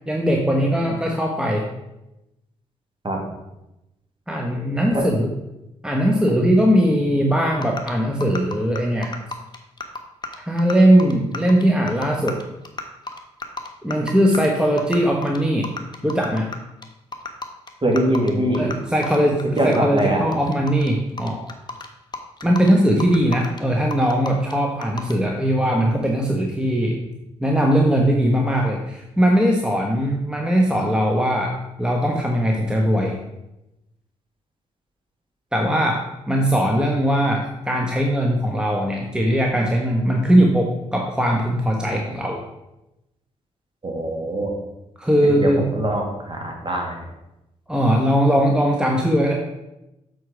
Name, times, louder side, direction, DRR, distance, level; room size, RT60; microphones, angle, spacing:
voice 1, 0.1-1.7 4.3-5.3 5.8-9.1 10.5-12.4 13.8-15.7 16.0-16.5 18.6-21.4 22.4-27.0 27.4-33.1 35.5-42.4 45.0-45.6 47.7-49.3, equal, 5° right, 0 dB, 1.2 m, -20 dB
sound 1, 7.6-7.9 8.2-10.7 11.0-14.5 14.8-15.0 15.2-15.4 15.6-16.6 16.8-16.9 17.1-18.7 19.0-20.0 20.3-21.9 22.1-22.7 23.0-23.6 23.9-24.5 24.8-25.1, left 3 dB, 25° left, 1.2 m, -32 dB
voice 2, 17.8-18.7 19.6-20.2 43.8-44.5 45.2-47.0, right 1 dB, 30° right, 1 dB, 2.3 m, -22 dB
7.8 x 4.7 x 5.1 m, 0.93 s
hypercardioid pair, 40°, 16 cm